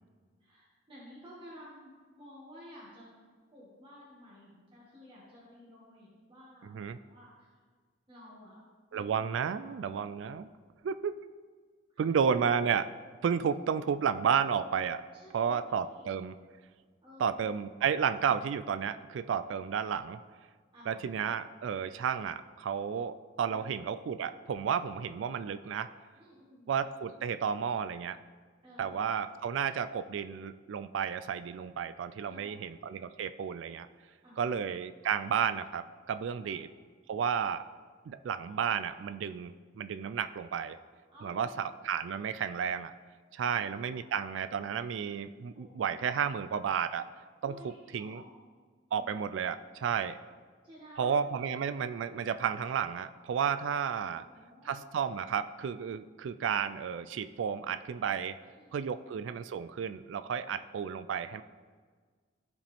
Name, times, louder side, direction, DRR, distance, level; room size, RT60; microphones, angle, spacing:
voice 1, 0.4-3.1 3.5-6.8 7.1-7.6 8.1-8.6 8.9-9.9 11.9-12.2 15.1-16.1 17.0-17.4 20.7-21.1 23.5-23.8 24.8-25.0 26.2-26.7 28.6-29.1 32.2-32.6 34.2-34.6 36.4-36.7 41.1-42.0 43.4-44.0 45.5-46.2 47.4-48.4 48.9-49.1 50.6-51.5 54.0-54.9 58.5-59.1, equal, 30° right, -8 dB, 1.9 m, -54 dB
voice 2, 8.9-10.5 10.8-11.1 12.0-12.9 13.2-15.0 15.3-16.3 17.2-20.2 20.9-25.9 26.7-28.2 28.8-33.9 34.4-36.7 37.1-37.6 38.1-40.8 41.2-42.9 43.3-47.1 47.4-47.6 47.9-48.2 48.9-50.2 51.0-54.2 54.7-58.4 58.7-61.4, right 7 dB, 85° right, 12 dB, 0.3 m, -32 dB
15.0 x 5.0 x 3.5 m, 1.5 s
head